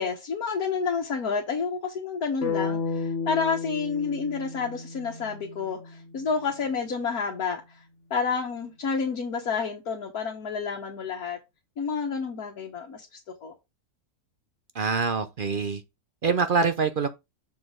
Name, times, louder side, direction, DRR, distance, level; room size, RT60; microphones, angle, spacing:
voice 1, 0.0-7.8 8.1-11.4 11.8-13.5, left 5 dB, 80° left, 1.8 m, -30 dB
sound 1, 2.4-6.5, left 5 dB, 55° left, 1.4 m, -33 dB
voice 2, 14.7-15.8 16.2-17.1, right 5 dB, 50° right, 0.7 m, -25 dB
6.9 x 4.2 x 5.0 m
omnidirectional pair, 1.5 m